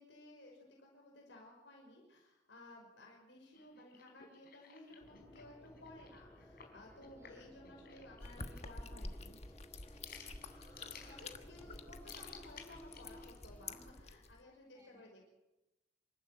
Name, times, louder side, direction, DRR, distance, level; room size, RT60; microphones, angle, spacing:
voice 1, 0.0-9.4 11.1-15.3, left 1 dB, 75° left, 0 dB, 5.5 m, -57 dB
sound 1, 3.5-13.6, left 6 dB, 55° left, 4.8 m, -58 dB
sound 2, 5.0-13.9, equal, 10° left, 2.9 m, -58 dB
voice 2, 7.1-7.5 10.3-11.3 14.7-15.3, right 1 dB, 15° right, 2 dB, 3.6 m, -69 dB
sound 3, 8.2-14.4, left 3 dB, 35° left, 1.4 m, -49 dB
27.5 x 14.0 x 7.7 m, 0.99 s
head